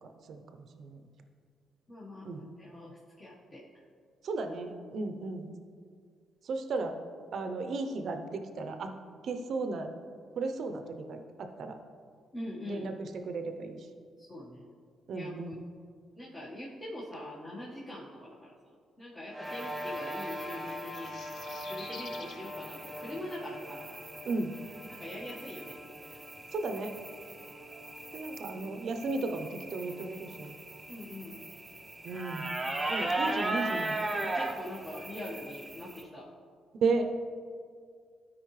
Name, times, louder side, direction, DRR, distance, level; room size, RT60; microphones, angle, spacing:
voice 1, 0.0-1.0 2.2-2.4 4.2-5.5 6.4-7.0 7.3-8.9 9.2-9.9 10.4-11.8 12.6-13.9 15.1-15.5 24.2-24.5 26.5-26.9 28.1-30.5 32.0-32.5 32.9-34.0 36.8-37.1, right 3 dB, 60° right, 6 dB, 0.7 m, -34 dB
voice 2, 1.9-3.6 12.3-12.9 14.2-14.6 15.1-15.6 16.1-18.5 19.0-21.1 21.7-23.9 24.9-25.8 30.9-31.4 34.2-36.3, left 1 dB, 30° left, -6 dB, 1.5 m, -43 dB
sound 1, 19.3-32.0, equal, ahead, 1.7 m, -44 dB
sound 2, 19.5-36.0, right 2 dB, 15° right, 0.7 m, -39 dB
sound 3, 20.7-22.4, left 5 dB, 55° left, 0.6 m, -48 dB
12.5 x 5.0 x 3.2 m, 2.1 s
cardioid pair, 90°, 0 cm